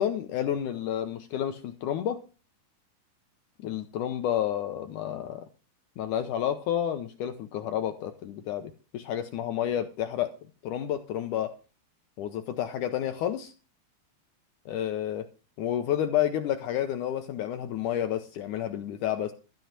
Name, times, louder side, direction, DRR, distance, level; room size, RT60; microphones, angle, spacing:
voice 1, 0.0-2.2 3.6-5.5 6.0-10.3 10.6-11.5 12.2-13.5 14.7-15.3 15.6-19.3, left 10 dB, 75° left, 7 dB, 1.9 m, -30 dB
13.5 x 5.6 x 7.4 m, 0.35 s
omnidirectional pair, 4.5 m